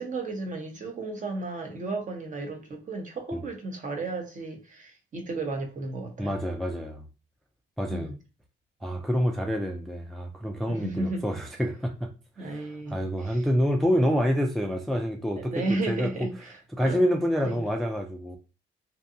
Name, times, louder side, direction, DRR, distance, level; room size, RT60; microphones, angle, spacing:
voice 1, 0.0-6.4 7.9-8.1 10.7-11.3 12.4-13.5 14.0-14.1 15.4-17.0 17.4-17.6, right 2 dB, 40° right, 0.8 m, -34 dB
voice 2, 6.2-7.1 7.8-8.1 8.8-12.1 12.4-16.1 16.8-18.4, equal, ahead, 0.3 m, -27 dB
2.6 x 2.2 x 2.6 m
cardioid pair, 90°, 20 cm